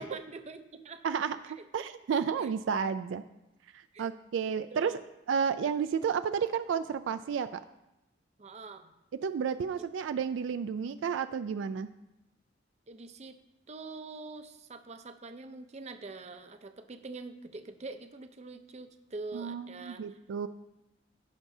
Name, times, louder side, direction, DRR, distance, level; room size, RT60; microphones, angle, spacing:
voice 1, 0.0-1.0 1.5-1.6 2.4-2.5 3.9-4.1 4.7-5.0 8.4-8.9 12.9-13.4 13.7-20.1, right 3 dB, 35° right, 8 dB, 0.6 m, -44 dB
voice 2, 1.0-3.2 3.7-5.0 5.3-7.6 9.2-11.9 19.3-20.5, right 6 dB, 80° right, 10 dB, 0.3 m, -32 dB
16.5 x 6.0 x 2.7 m, 0.94 s
head